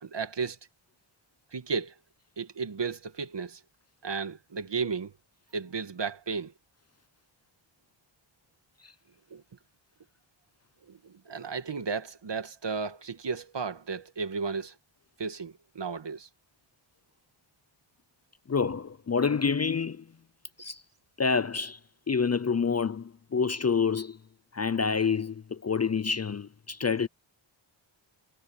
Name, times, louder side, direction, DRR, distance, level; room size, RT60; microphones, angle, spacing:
voice 1, 0.0-0.6 1.5-1.9 2.4-3.6 4.0-5.1 5.5-6.5 9.3-9.4 10.9-14.7 15.2-16.3, right 5 dB, 60° right, 2.1 m, -34 dB
voice 2, 18.5-20.0 20.6-20.8 21.2-21.8 22.1-24.2 24.5-27.1, left 5 dB, 35° left, 0.5 m, -27 dB
wide cardioid pair, 85°, 48 cm